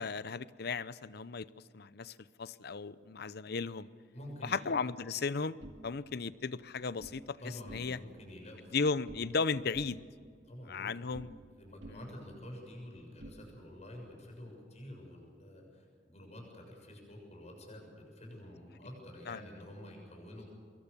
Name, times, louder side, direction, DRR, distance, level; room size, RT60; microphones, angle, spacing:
voice 1, 0.0-1.5 1.7-3.9 4.4-7.4 7.7-8.0 8.7-10.0 10.7-11.4 11.9-12.0 19.3-19.4, left 4 dB, 60° left, 17 dB, 0.7 m, -35 dB
voice 2, 4.1-4.8 7.4-8.7 10.4-20.4, left 1 dB, 40° left, 1 dB, 6.9 m, -49 dB
sound 1, 5.6-7.2 7.6-8.2 8.5-9.4 9.7-11.5 11.8-13.9, right 1 dB, 65° right, 2.3 m, -53 dB
25.0 x 22.0 x 6.9 m, 2.1 s
head